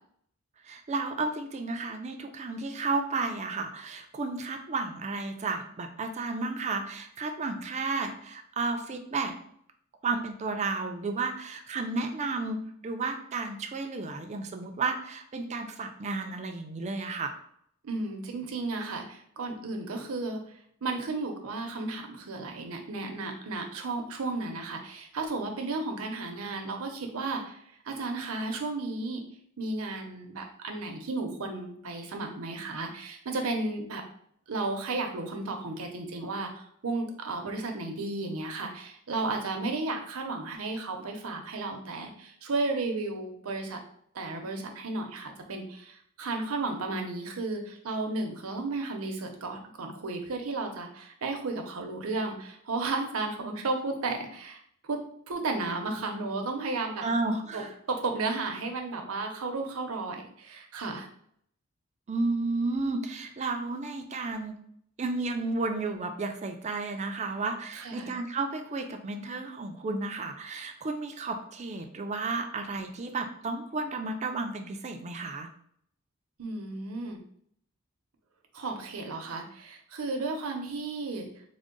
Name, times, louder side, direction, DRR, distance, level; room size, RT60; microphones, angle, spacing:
voice 1, 0.7-9.3 10.0-12.6 12.8-17.3 57.0-57.7 62.1-64.5 65.0-75.5, right 3 dB, 30° right, 5 dB, 0.4 m, -32 dB
voice 2, 17.8-20.4 20.8-27.6 27.8-29.2 29.6-34.0 34.5-43.8 44.1-55.0 55.3-57.0 57.5-57.6 57.9-61.1 67.7-68.1 76.4-77.2 78.5-81.3, right 3 dB, 80° right, 4 dB, 0.7 m, -33 dB
3.6 x 2.0 x 3.7 m, 0.66 s
head